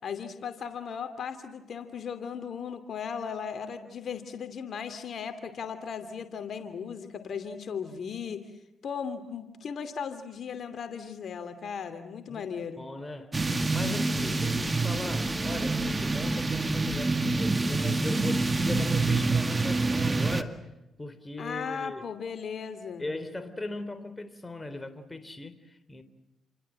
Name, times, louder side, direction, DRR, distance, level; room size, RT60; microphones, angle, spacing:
voice 1, 0.0-8.5 8.8-12.8 21.4-23.1, left 6 dB, 60° left, 2.7 m, -37 dB
voice 2, 12.8-13.4 13.7-20.7 21.0-22.0 23.0-26.0, left 2 dB, 20° left, 3.7 m, -39 dB
sound 1, 13.3-20.4, right 3 dB, 25° right, 2.1 m, -27 dB
29.5 x 25.0 x 7.6 m
supercardioid pair, 60°, 0 cm